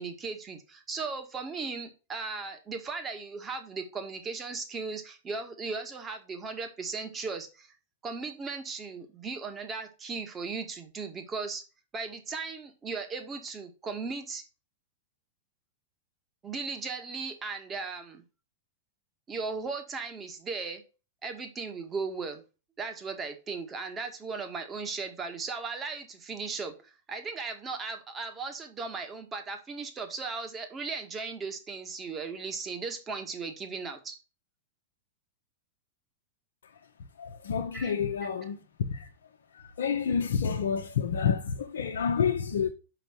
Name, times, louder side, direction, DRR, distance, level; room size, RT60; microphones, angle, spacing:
voice 1, 0.0-7.7 8.0-11.6 11.9-14.4 16.4-18.2 19.3-20.8 21.2-22.4 22.8-34.2 37.7-37.9, right 4 dB, 25° right, 1.8 m, -37 dB
voice 2, 37.2-38.6 38.9-39.1 39.8-42.7, left 7 dB, 75° left, 1.1 m, -28 dB
5.9 x 5.3 x 6.0 m
hypercardioid pair, 110°, 0 cm